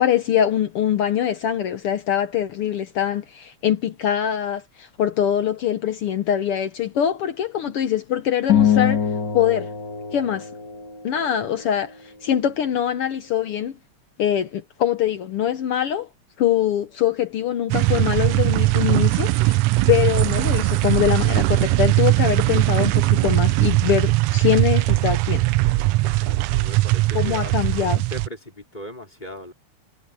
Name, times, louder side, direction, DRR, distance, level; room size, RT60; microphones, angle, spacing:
voice 1, 0.0-9.0 9.3-9.7 10.1-10.5 11.0-11.9 12.2-13.7 14.2-16.1 16.4-19.6 19.9-25.4 27.1-28.0, left 10 dB, 65° left, 1.5 m, -23 dB
sound 1, 8.5-11.1, left 8 dB, 40° left, 2.9 m, -22 dB
sound 2, 17.7-28.3, right 19 dB, 80° right, 1.5 m, -20 dB
voice 2, 26.0-27.5 28.1-29.5, equal, 15° left, 4.3 m, -38 dB
omnidirectional pair, 3.3 m